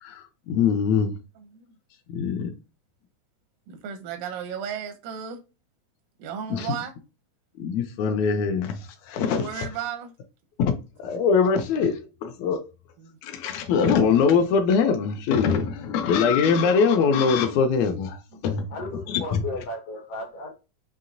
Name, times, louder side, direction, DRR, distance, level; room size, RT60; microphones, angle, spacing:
voice 1, 0.0-1.1 2.1-2.5 6.5-6.7 7.6-9.4 10.6-10.7 11.0-12.6 13.2-18.7 19.1-19.4, left 6 dB, 90° left, 1.6 m, -22 dB
voice 2, 1.4-1.7 2.2-2.3 3.7-5.4 6.2-6.9 9.3-10.1 13.0-13.2 18.3-18.5 18.8-19.0, right 8 dB, 85° right, 2.3 m, -35 dB
voice 3, 18.7-20.5, left 2 dB, 70° left, 1.5 m, -34 dB
6.1 x 2.8 x 2.6 m
omnidirectional pair, 3.9 m